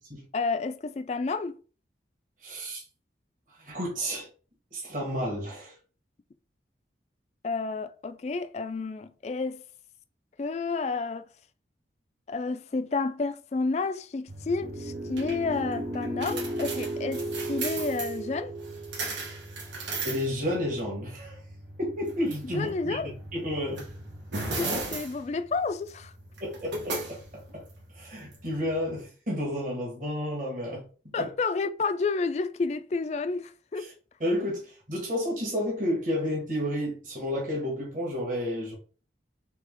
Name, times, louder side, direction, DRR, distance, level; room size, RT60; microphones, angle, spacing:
voice 1, 0.3-1.6 7.4-9.6 10.4-11.3 12.3-18.5 22.4-23.1 24.4-26.1 31.1-33.8, left 4 dB, 40° left, 0.3 m, -30 dB
voice 2, 2.4-2.8 3.6-4.3 4.7-5.7 20.0-21.4 21.8-23.0 23.3-23.9 26.4-27.6 27.9-30.9 31.2-31.3 33.8-33.9 34.2-38.7, equal, 45° right, 1.3 m, -31 dB
sound 1, 14.3-29.0, right 2 dB, 90° right, 1.2 m, -38 dB
sound 2, 14.6-19.7, right 1 dB, 75° right, 0.8 m, -35 dB
3.5 x 3.4 x 3.6 m
head